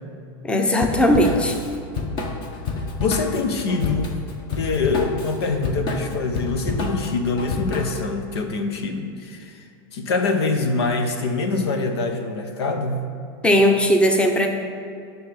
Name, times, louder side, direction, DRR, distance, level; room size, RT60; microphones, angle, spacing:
voice 1, 0.4-1.6 13.4-14.5, equal, 10° left, 4 dB, 0.8 m, -18 dB
Drum kit / Drum, 0.8-8.1, left 3 dB, 35° left, 1.2 m, -29 dB
voice 2, 3.0-4.2 4.6-9.6 9.9-13.1, left 3 dB, 85° left, 6 dB, 1.2 m, -24 dB
10.5 x 6.4 x 5.3 m, 2.5 s
supercardioid pair, 140°, 13 cm